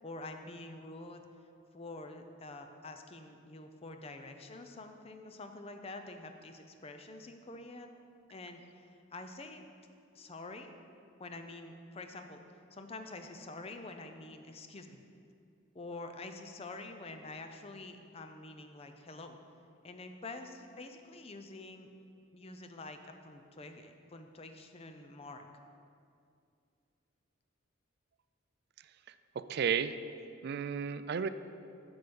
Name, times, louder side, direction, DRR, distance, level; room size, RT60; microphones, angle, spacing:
voice 1, 0.0-1.2 1.7-7.9 8.3-9.6 10.1-10.7 11.2-12.4 12.7-15.0 15.7-19.4 19.8-21.9 22.3-25.5, left 2 dB, 30° left, 6 dB, 0.5 m, -47 dB
voice 2, 29.4-29.9 30.4-31.3, right 7 dB, 50° right, 12 dB, 0.3 m, -32 dB
7.7 x 7.0 x 5.3 m, 2.4 s
head